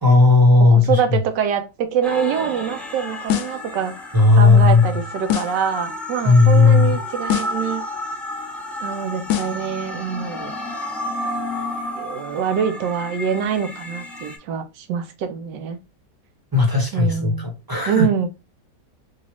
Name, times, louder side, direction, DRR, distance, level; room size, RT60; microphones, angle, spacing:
voice 1, 0.0-1.2 4.1-4.8 6.2-7.0 16.5-18.1, left 3 dB, 15° right, 0.9 m, -14 dB
voice 2, 0.7-3.9 4.4-7.8 8.8-10.5 11.9-15.8 16.9-17.5 17.9-18.3, right 7 dB, 80° right, 1.4 m, -24 dB
sound 1, 2.0-14.4, left 1 dB, ahead, 0.4 m, -32 dB
sound 2, 3.3-3.7 5.3-5.7 7.3-7.7 9.3-9.7, left 12 dB, 85° left, 1.3 m, -24 dB
4.0 x 2.4 x 3.0 m
omnidirectional pair, 1.9 m